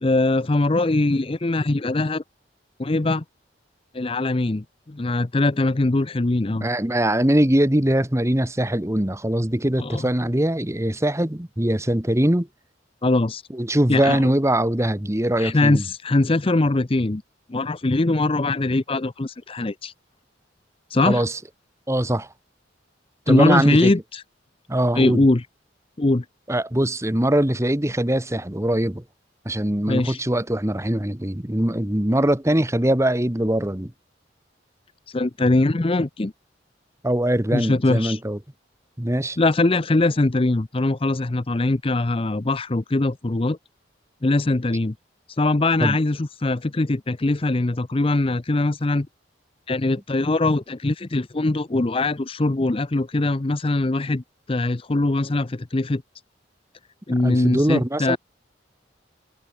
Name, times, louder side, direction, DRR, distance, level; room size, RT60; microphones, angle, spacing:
voice 1, 0.0-2.2 2.8-3.2 3.9-6.7 9.8-10.1 13.0-13.4 13.9-14.2 15.4-17.2 17.5-19.9 20.9-21.3 23.3-24.2 24.9-25.4 26.0-26.2 29.9-30.2 35.1-36.3 37.5-38.2 39.4-43.6 44.2-44.9 45.4-49.1 49.7-54.2 54.5-56.0 57.1-58.2, left 2 dB, 30° left, 0.6 m, -21 dB
voice 2, 6.5-12.5 13.5-15.8 21.1-21.4 21.9-22.3 23.3-23.9 24.7-25.2 26.5-29.0 29.4-33.9 37.0-38.4 39.0-39.4 45.8-46.0 57.1-58.2, right 1 dB, 15° right, 1.3 m, -22 dB
head